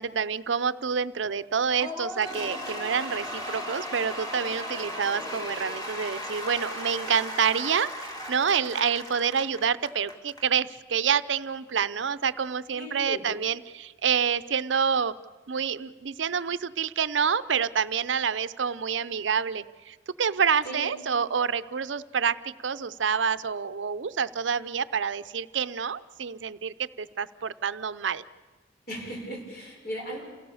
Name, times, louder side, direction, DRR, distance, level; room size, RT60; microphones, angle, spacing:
voice 1, 0.0-15.1 15.5-28.2, right 6 dB, 75° right, 15 dB, 0.6 m, -28 dB
Cheering / Applause / Crowd, 1.8-10.4, left 1 dB, 20° left, 2.7 m, -36 dB
voice 2, 12.7-13.2 20.6-20.9 28.9-30.2, right 1 dB, 55° left, -1 dB, 6.6 m, -37 dB
28.5 x 17.0 x 7.1 m, 1.3 s
head